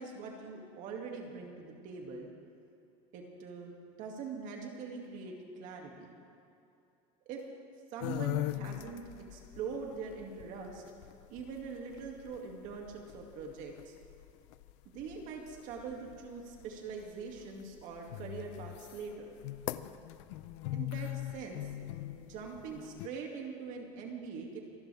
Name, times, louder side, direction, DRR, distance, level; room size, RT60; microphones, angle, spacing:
voice 1, 0.0-2.3 3.1-6.1 7.3-7.4 7.9-9.0 9.3-10.8 11.3-14.0 14.8-19.3 20.7-21.7 22.2-24.6, right 5 dB, 55° right, 1 dB, 2.5 m, -43 dB
sound 1, 8.0-23.1, left 15 dB, 80° left, 0.6 m, -42 dB
25.5 x 11.5 x 3.5 m, 2.7 s
supercardioid pair, 135°, 16 cm